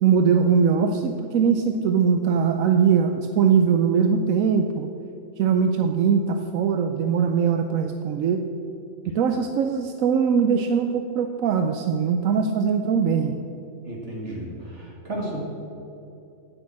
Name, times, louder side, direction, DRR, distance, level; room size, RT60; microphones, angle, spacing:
voice 1, 0.0-4.9 5.4-8.4 9.1-13.3, right 6 dB, 80° right, 6 dB, 1.1 m, -21 dB
voice 2, 13.8-15.4, right 1 dB, 55° right, -2 dB, 2.3 m, -33 dB
10.0 x 9.5 x 7.5 m, 2.8 s
omnidirectional pair, 1.4 m